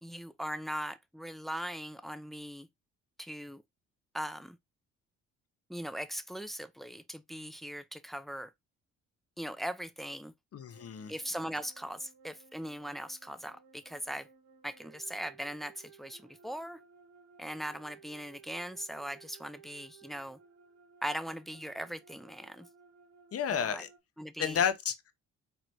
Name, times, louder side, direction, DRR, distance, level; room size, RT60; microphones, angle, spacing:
voice 1, 0.0-2.7 3.2-3.6 4.1-4.6 5.7-8.5 9.4-10.3 11.1-14.3 14.6-16.8 17.4-20.4 21.0-22.7 23.5-23.8 24.2-24.6, equal, ahead, 0.5 m, -40 dB
voice 2, 10.5-11.1 23.3-23.9 24.4-25.1, left 8 dB, 50° left, 0.9 m, -31 dB
sound 1, 10.6-24.0, right 6 dB, 60° right, 1.3 m, -59 dB
4.5 x 3.0 x 2.6 m
cardioid pair, 90°, 29 cm